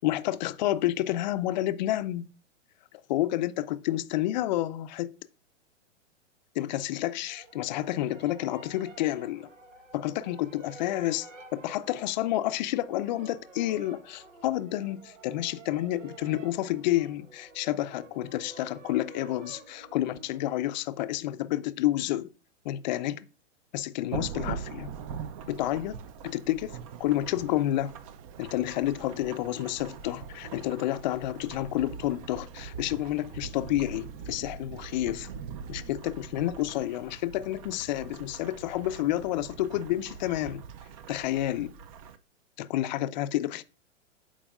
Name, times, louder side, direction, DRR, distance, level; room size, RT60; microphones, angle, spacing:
voice 1, 0.0-2.3 3.1-5.1 6.6-9.5 9.9-11.3 11.5-22.3 22.6-23.3 23.7-24.9 25.5-26.0 26.2-27.9 28.4-35.3 35.7-40.6 41.1-41.7 42.6-43.6, left 14 dB, 40° left, 0.5 m, -30 dB
sound 1, 7.3-20.4, right 3 dB, 90° right, 1.2 m, -50 dB
Thunderstorm / Rain, 24.1-42.2, right 7 dB, 30° right, 0.5 m, -42 dB
11.0 x 4.5 x 2.3 m
hypercardioid pair, 125°, 37 cm